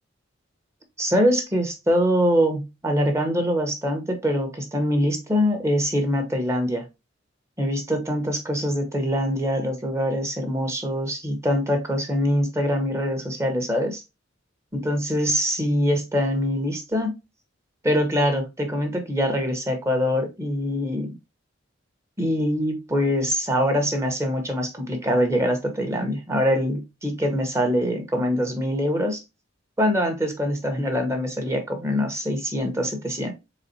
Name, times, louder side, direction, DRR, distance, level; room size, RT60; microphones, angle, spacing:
voice 1, 1.0-6.8 7.6-14.0 14.7-17.2 17.8-21.1 22.2-29.2 29.8-33.3, equal, 15° right, 4 dB, 0.9 m, -24 dB
4.1 x 3.7 x 2.7 m, 0.24 s
head